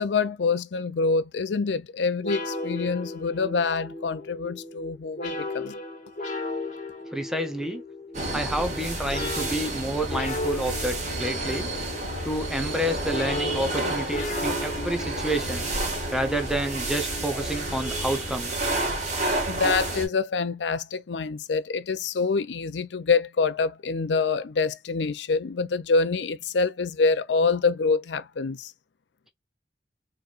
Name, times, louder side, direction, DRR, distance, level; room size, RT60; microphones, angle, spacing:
voice 1, 0.0-5.8 19.5-28.7, left 4 dB, 85° left, 0.5 m, -26 dB
sound 1, 2.2-18.4, left 2 dB, 45° left, 1.2 m, -36 dB
voice 2, 7.1-7.8 8.3-11.7 12.2-15.7 16.1-18.5, right 1 dB, 5° right, 0.7 m, -29 dB
sound 2, 8.1-20.1, right 2 dB, 45° right, 1.8 m, -30 dB
4.5 x 3.1 x 2.5 m
head